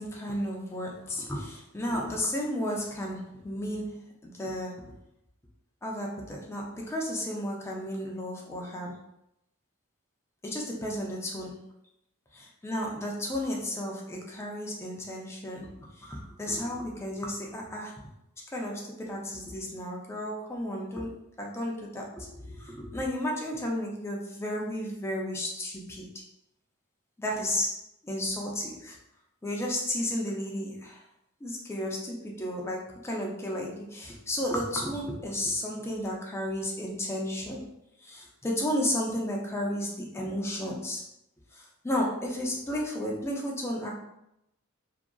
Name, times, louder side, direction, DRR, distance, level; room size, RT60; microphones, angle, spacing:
voice 1, 0.0-4.8 5.8-9.0 10.4-11.6 12.6-18.0 18.5-26.1 27.2-27.8 28.0-29.0 29.4-31.0 31.4-37.6 38.0-41.0 41.5-43.9, left 1 dB, 10° left, -1 dB, 0.4 m, -33 dB
2.7 x 2.4 x 2.3 m, 0.83 s
head